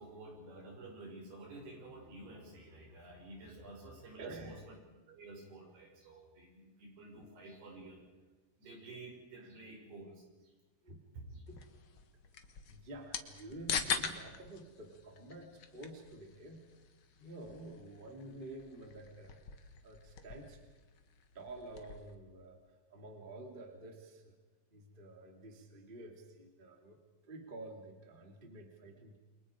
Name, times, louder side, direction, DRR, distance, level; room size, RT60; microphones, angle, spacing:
voice 1, 0.0-4.6 5.1-8.0 8.6-10.5 11.1-11.4, right 2 dB, 80° right, 0 dB, 7.6 m, -51 dB
voice 2, 4.2-4.6 7.1-7.2 9.4-9.5 10.8-11.0 11.3-11.6 12.7-16.7 17.2-20.6 21.3-22.6 22.9-24.3 24.7-29.2, right 2 dB, 15° right, 3 dB, 2.1 m, -50 dB
sound 1, 11.5-22.1, left 7 dB, 65° left, 1.3 m, -44 dB
29.5 x 23.5 x 5.0 m, 1.2 s
omnidirectional pair, 4.5 m